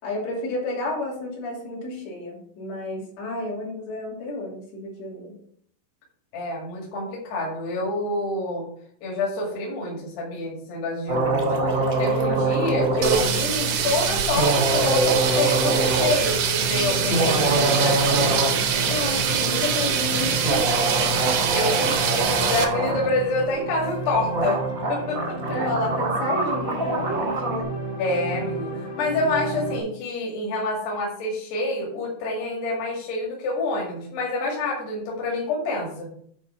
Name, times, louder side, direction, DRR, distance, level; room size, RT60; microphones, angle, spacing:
voice 1, 0.0-5.4 18.8-20.6 25.5-27.7, left 2 dB, 90° left, -4 dB, 5.1 m, -31 dB
voice 2, 6.3-8.7 9.0-18.4 19.2-19.4 21.5-24.6 24.9-25.4 28.0-36.1, left 2 dB, 70° left, -2 dB, 4.1 m, -27 dB
sound 1, 11.1-13.3 14.3-16.2 17.0-18.6 18.9-19.0 20.4-23.1 24.0-24.1 24.3-27.6, right 2 dB, 55° right, 0.9 m, -24 dB
sound 2, 13.0-22.6, right 7 dB, 70° right, 1.8 m, -24 dB
sound 3, 16.5-29.8, right 2 dB, 55° left, 0.4 m, -32 dB
10.5 x 4.2 x 5.8 m, 0.63 s
omnidirectional pair, 4.9 m